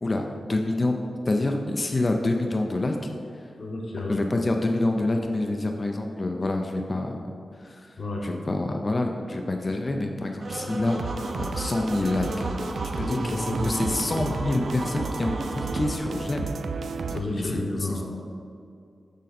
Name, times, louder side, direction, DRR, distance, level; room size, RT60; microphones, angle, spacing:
voice 1, 0.0-3.4 4.1-11.0 11.4-12.5 13.0-16.5 17.3-18.0, left 2 dB, 30° left, 3 dB, 0.4 m, -27 dB
voice 2, 3.6-4.2 8.0-8.2 13.0-13.8 17.1-18.0, left 1 dB, 50° left, -1 dB, 1.0 m, -30 dB
sound 1, 10.4-16.0, right 2 dB, 50° right, 0.7 m, -34 dB
sound 2, 11.0-17.2, right 4 dB, 75° right, 0.4 m, -33 dB
6.5 x 6.3 x 4.1 m, 2.4 s
wide cardioid pair, 180°, 0 cm